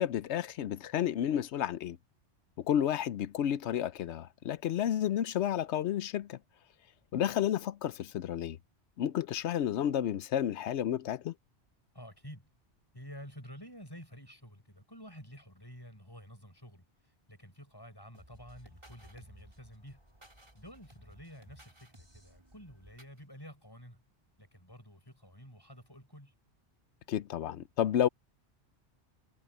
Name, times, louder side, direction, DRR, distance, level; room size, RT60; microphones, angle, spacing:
voice 1, 0.0-2.0 2.7-6.4 7.1-8.6 9.0-11.3 27.1-28.1, left 10 dB, 80° left, 0.9 m, -31 dB
voice 2, 11.9-12.5 12.9-20.0 20.5-24.0 24.4-26.3, equal, 20° left, 7.2 m, -50 dB
sound 1, 18.1-23.2, right 1 dB, 25° right, 5.1 m, -57 dB
omnidirectional pair, 1.1 m